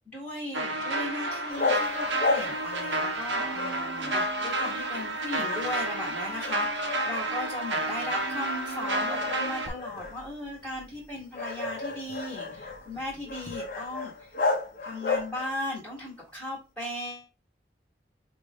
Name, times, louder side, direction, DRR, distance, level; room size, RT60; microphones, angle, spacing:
voice 1, 0.0-14.4 14.8-17.3, left 1 dB, 5° left, -6 dB, 1.3 m, -37 dB
sound 1, 0.5-9.7, right 1 dB, 80° right, 0.9 m, -30 dB
sound 2, 1.5-3.3 3.6-5.1 5.4-6.1 6.4-7.6 8.1-8.2 8.8-15.7, left 3 dB, 50° left, 0.9 m, -33 dB
4.9 x 2.6 x 3.4 m, 0.29 s
head